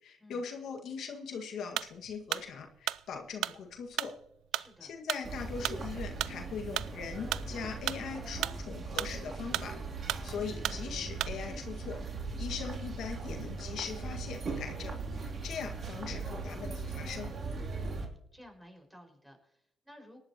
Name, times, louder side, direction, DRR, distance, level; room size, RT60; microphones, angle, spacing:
voice 1, 0.0-4.1 4.8-12.0 12.4-17.3, left 6 dB, 75° left, 3 dB, 1.8 m, -41 dB
sound 1, 1.8-11.5, right 13 dB, 85° right, 0.4 m, -36 dB
voice 2, 4.5-4.9 17.7-18.0 18.3-20.2, left 1 dB, 5° right, 2 dB, 5.4 m, -55 dB
sound 2, 5.2-18.1, right 3 dB, 50° right, 3.1 m, -39 dB
19.0 x 11.5 x 3.0 m, 0.75 s
cardioid pair, 90°, 0 cm